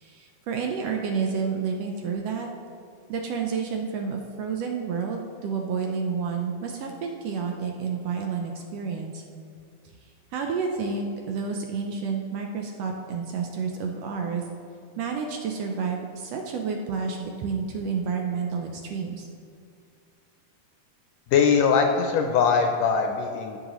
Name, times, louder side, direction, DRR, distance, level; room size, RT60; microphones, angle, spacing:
voice 1, 0.0-2.5 3.1-9.2 10.3-14.4 15.0-19.3, right 5 dB, 75° right, 2 dB, 1.6 m, -30 dB
voice 2, 21.3-23.6, left 6 dB, 80° left, 4 dB, 1.6 m, -21 dB
15.0 x 6.5 x 3.0 m, 2.3 s
omnidirectional pair, 3.3 m